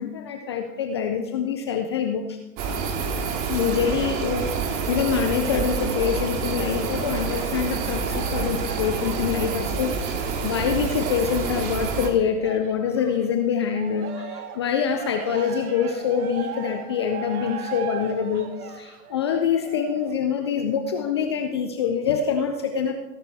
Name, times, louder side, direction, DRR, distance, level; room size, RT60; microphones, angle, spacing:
voice 1, 0.0-2.4 3.5-18.4 18.7-23.0, left 7 dB, 20° left, 5 dB, 0.3 m, -25 dB
sound 1, 2.6-12.1, right 5 dB, 40° right, 2.2 m, -27 dB
Cheering, 7.0-13.3 13.7-20.3 20.9-21.0, right 7 dB, 60° right, 1.9 m, -39 dB
17.0 x 10.5 x 3.4 m, 1.0 s
hypercardioid pair, 110°, 49 cm